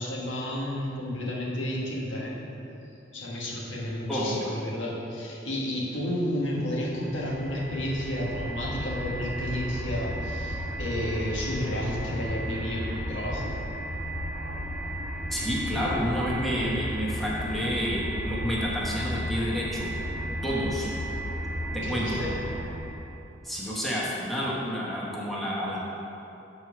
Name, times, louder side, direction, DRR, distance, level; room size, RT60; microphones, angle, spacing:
voice 1, 0.0-2.3 3.1-13.5 21.8-22.3, left 1 dB, 85° left, -4 dB, 1.5 m, -31 dB
voice 2, 4.1-4.6 15.3-19.9 20.4-20.9 21.7-22.2 23.4-25.8, equal, ahead, -7 dB, 1.1 m, -29 dB
sound 1, 7.0-23.1, equal, 60° right, 1.2 m, -34 dB
7.0 x 4.7 x 5.9 m, 2.9 s
head